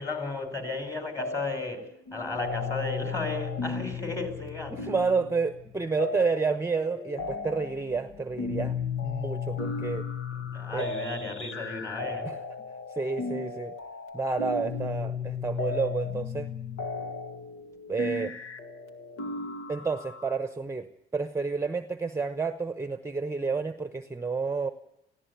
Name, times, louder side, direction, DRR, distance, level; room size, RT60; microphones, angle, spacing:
voice 1, 0.0-1.9 2.1-4.9 10.3-12.3, left 3 dB, 15° left, 4.6 m, -34 dB
sound 1, 1.2-1.8 2.1-20.3, left 5 dB, 85° left, 2.1 m, -35 dB
voice 2, 4.7-10.1 10.7-10.9 12.2-12.4 12.9-13.7 14.1-16.5 17.9-18.3 19.7-24.7, right 4 dB, 15° right, 0.9 m, -30 dB
18.5 x 15.5 x 9.3 m
cardioid pair, 90°, 20 cm